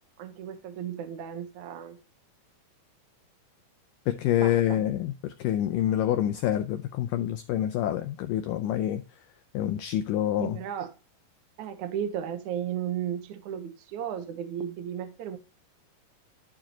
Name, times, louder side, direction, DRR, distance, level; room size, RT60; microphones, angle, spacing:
voice 1, 0.2-2.0 4.4-4.8 10.4-10.9 11.6-15.4, right 9 dB, 65° right, 2.0 m, -34 dB
voice 2, 4.1-9.3 9.5-10.6, left 11 dB, 80° left, 1.9 m, -27 dB
12.5 x 4.7 x 2.9 m
omnidirectional pair, 4.5 m